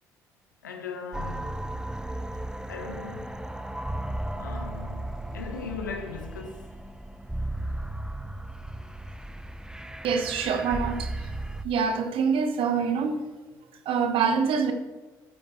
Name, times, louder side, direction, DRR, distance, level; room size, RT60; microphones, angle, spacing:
voice 1, 0.6-1.5 2.7-3.4 4.3-6.7, left 5 dB, 90° left, 1.0 m, -38 dB
sound 1, 1.1-11.6, right 1 dB, 5° right, 1.0 m, -35 dB
voice 2, 10.0-11.3 11.6-13.2 13.8-14.7, right 6 dB, 65° right, 1.3 m, -25 dB
13.0 x 9.0 x 4.6 m
figure-of-eight pair, 40°, 10 cm